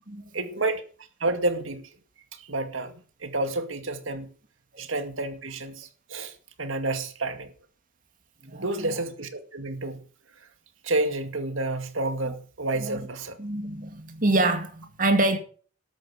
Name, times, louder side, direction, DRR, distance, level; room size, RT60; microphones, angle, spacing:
voice 1, 0.3-0.8 1.2-1.9 2.3-2.9 3.2-4.3 4.8-7.5 8.5-10.0 10.4-10.5 10.8-13.4, right 2 dB, 75° right, 2.1 m, -30 dB
voice 2, 8.4-8.9 12.3-12.4 12.8-13.1 13.4-15.4, right 2 dB, 45° right, 2.3 m, -26 dB
13.0 x 9.3 x 6.3 m
head